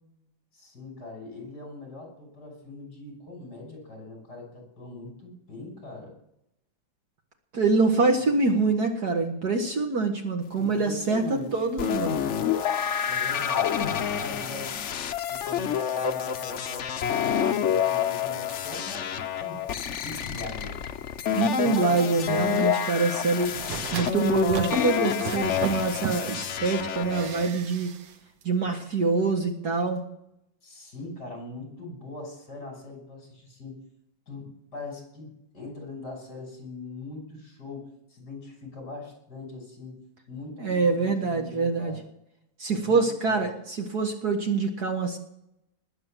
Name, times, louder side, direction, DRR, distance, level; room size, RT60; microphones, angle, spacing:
voice 1, 0.5-6.1 10.5-11.6 13.0-14.8 15.3-19.6 20.0-20.8 30.6-33.8 34.3-40.0 40.3-42.0 42.7-43.4, left 2 dB, 50° left, 2 dB, 6.7 m, -41 dB
voice 2, 7.5-12.2 21.4-23.5 23.9-27.9 28.4-30.0 40.6-42.0 42.6-45.2, right 4 dB, 50° right, 4 dB, 2.0 m, -25 dB
sound 1, 11.8-27.5, left 8 dB, 75° left, 0.6 m, -28 dB
sound 2, 23.4-26.4 27.1-28.1 28.4-28.5, right 8 dB, 70° right, 1.6 m, -36 dB
20.0 x 8.1 x 7.5 m, 0.79 s
omnidirectional pair, 2.2 m